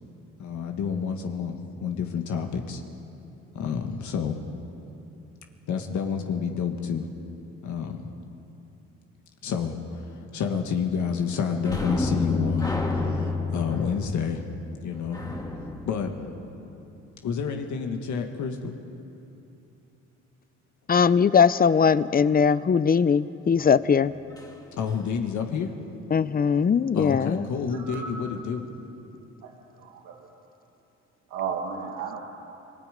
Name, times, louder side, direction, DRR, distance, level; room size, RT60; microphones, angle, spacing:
voice 1, 0.4-2.8 3.5-4.4 5.7-7.1 7.6-8.2 9.4-14.5 14.8-15.2 15.9-16.2 17.2-18.8 24.7-25.7 26.9-28.7, left 6 dB, 75° left, 4 dB, 1.8 m, -29 dB
sound 1, 11.6-17.0 24.4-24.5 24.9-25.0, left 3 dB, 10° left, 2.4 m, -30 dB
voice 2, 20.9-24.1 26.1-27.4, left 6 dB, 30° left, 16 dB, 0.6 m, -20 dB
voice 3, 27.8-28.1 29.4-29.5 29.8-30.2 31.3-32.2, right 6 dB, 90° right, 0 dB, 1.8 m, -33 dB
27.5 x 20.5 x 5.2 m, 3.0 s
cardioid pair, 90°, 30 cm